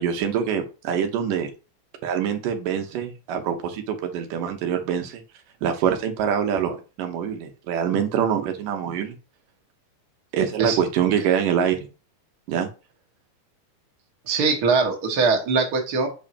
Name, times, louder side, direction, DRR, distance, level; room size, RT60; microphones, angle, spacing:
voice 1, 0.0-1.5 2.0-5.2 5.6-9.2 10.3-11.8 12.5-12.7, right 8 dB, 85° right, 6 dB, 2.7 m, -24 dB
voice 2, 14.3-16.1, right 4 dB, 40° right, 1 dB, 1.6 m, -22 dB
7.8 x 5.2 x 2.8 m, 0.32 s
omnidirectional pair, 3.7 m